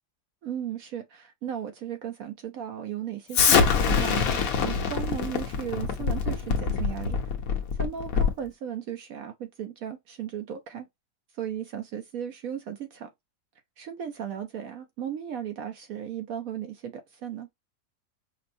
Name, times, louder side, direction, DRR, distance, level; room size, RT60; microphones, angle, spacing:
voice 1, 0.4-7.2 7.7-10.9 11.4-13.1 13.8-17.5, right 9 dB, 70° right, 0.9 m, -36 dB
Explosion, 3.3-8.5, left 6 dB, 60° left, 1.2 m, -24 dB
5.2 x 2.1 x 2.6 m
omnidirectional pair, 1.8 m